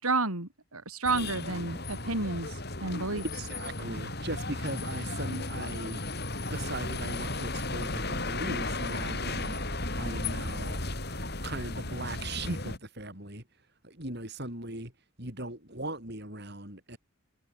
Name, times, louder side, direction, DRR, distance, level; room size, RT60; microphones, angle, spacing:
voice 1, 0.0-3.2, right 3 dB, 90° right, 4.9 m, -31 dB
sound 1, 1.0-12.8, left 2 dB, 50° left, 6.1 m, -35 dB
voice 2, 3.4-6.0 6.5-9.6 10.0-10.9 11.4-13.4 13.8-14.9 15.2-17.0, right 1 dB, 50° right, 7.2 m, -39 dB
head